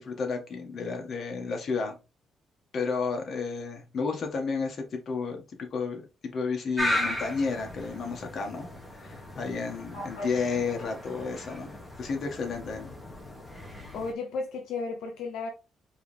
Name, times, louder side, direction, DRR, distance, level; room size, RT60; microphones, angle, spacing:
voice 1, 0.0-1.9 2.7-11.7 12.0-12.9, left 4 dB, 55° left, 1.7 m, -32 dB
sound 1, 6.8-14.1, left 1 dB, 10° left, 1.8 m, -36 dB
voice 2, 9.9-10.4 13.9-15.5, left 3 dB, 80° left, 0.8 m, -34 dB
4.7 x 3.3 x 3.4 m
cardioid pair, 90°, 0 cm